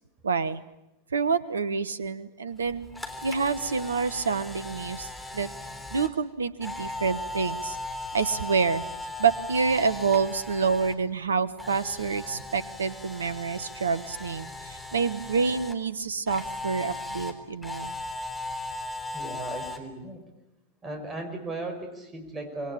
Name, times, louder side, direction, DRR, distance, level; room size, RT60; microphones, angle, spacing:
voice 1, 0.2-0.6 1.1-2.9 3.2-5.5 5.9-7.8 8.1-8.8 9.2-17.9, right 5 dB, 70° right, 17 dB, 1.3 m, -27 dB
Camera, 2.6-11.0 11.3-15.7 16.3-19.8, left 2 dB, 5° left, 3.6 m, -37 dB
voice 2, 19.1-20.2 20.8-22.7, right 2 dB, 20° right, 5 dB, 5.7 m, -36 dB
27.0 x 22.5 x 8.7 m, 0.89 s
figure-of-eight pair, 90°, 0 cm